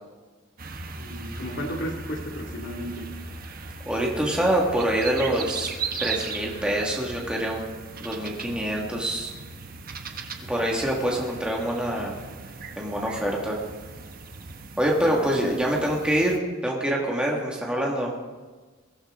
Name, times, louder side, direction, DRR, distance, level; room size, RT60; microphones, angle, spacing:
sound 1, 0.6-16.4, right 4 dB, 45° right, 1.1 m, -38 dB
voice 1, 0.9-3.1 15.1-15.5, equal, 60° left, 1 dB, 2.4 m, -34 dB
voice 2, 3.9-5.7 6.0-7.6 8.0-9.3 10.4-12.2 12.8-13.6 14.8-18.2, right 1 dB, 5° right, -2 dB, 1.9 m, -25 dB
22.0 x 14.5 x 3.8 m, 1.3 s
head